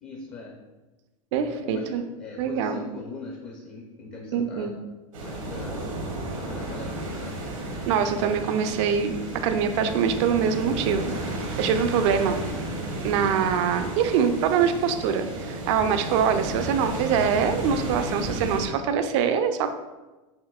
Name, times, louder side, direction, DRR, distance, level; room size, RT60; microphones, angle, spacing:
voice 1, 0.0-0.5 1.5-4.8 5.2-5.8 6.5-7.3, left 3 dB, 35° left, 0 dB, 0.6 m, -40 dB
voice 2, 1.3-2.0 2.4-2.8 4.3-4.7 7.9-12.4 13.0-19.8, right 7 dB, 60° right, 8 dB, 0.4 m, -24 dB
sound 1, 5.1-18.7, right 1 dB, 85° right, 1.0 m, -33 dB
5.5 x 2.6 x 2.3 m, 1.2 s
hypercardioid pair, 110°, 17 cm